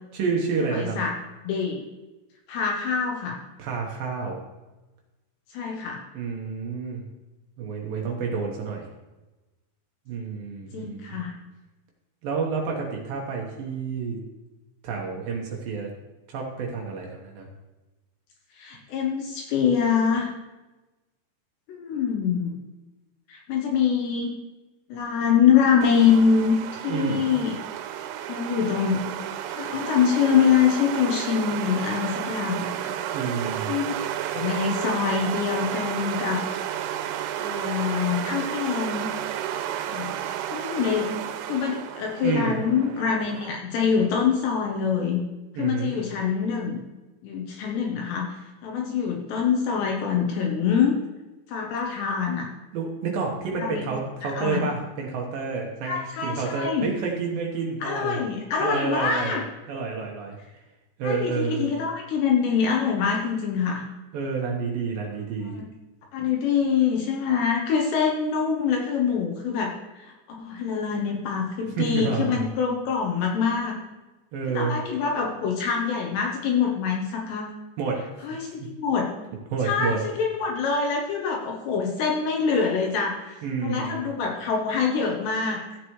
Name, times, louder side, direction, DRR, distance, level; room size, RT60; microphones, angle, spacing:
voice 1, 0.1-1.0 3.6-4.4 6.1-7.0 7.6-8.9 10.1-11.2 12.2-14.2 14.8-15.9 16.3-17.5 26.9-27.2 33.1-33.7 42.2-42.6 45.6-46.0 52.7-58.2 58.6-59.4 59.7-60.4 61.0-61.6 64.1-65.6 71.8-72.4 74.3-74.8 77.8-78.1 78.6-78.7 79.5-80.0 83.4-84.0, right 5 dB, 70° right, -1 dB, 2.2 m, -29 dB
voice 2, 0.7-1.1 1.5-1.8 2.5-3.4 5.5-6.0 10.7-11.3 18.6-20.3 21.7-22.6 23.3-24.3 24.9-27.6 28.3-29.1 29.5-33.0 33.7-34.0 34.3-36.4 37.4-39.1 39.9-41.1 41.5-45.2 45.6-46.8 47.2-51.0 51.5-52.5 53.6-53.8 54.2-54.7 55.8-56.9 57.8-59.4 61.0-63.8 65.6-65.7 66.1-73.8 74.5-77.5 78.2-79.1 79.6-85.6, left 6 dB, 75° left, 0 dB, 2.8 m, -25 dB
sound 1, 25.8-43.6, right 11 dB, 90° right, 3.3 m, -32 dB
15.0 x 8.0 x 3.1 m, 1.1 s
omnidirectional pair, 5.7 m